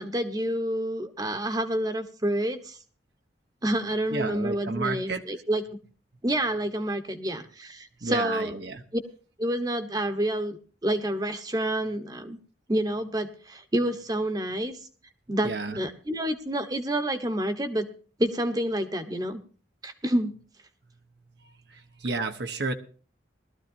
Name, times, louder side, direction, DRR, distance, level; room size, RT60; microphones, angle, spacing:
voice 1, 0.0-2.8 3.6-5.8 6.2-8.5 9.4-12.4 12.7-14.8 15.3-17.9 18.2-19.4 19.8-20.3, right 1 dB, 20° right, 9 dB, 1.0 m, -28 dB
voice 2, 4.1-5.3 8.0-8.8 15.4-15.8 20.8-22.7, right 3 dB, 65° right, 6 dB, 1.0 m, -32 dB
20.0 x 13.5 x 2.6 m, 0.39 s
head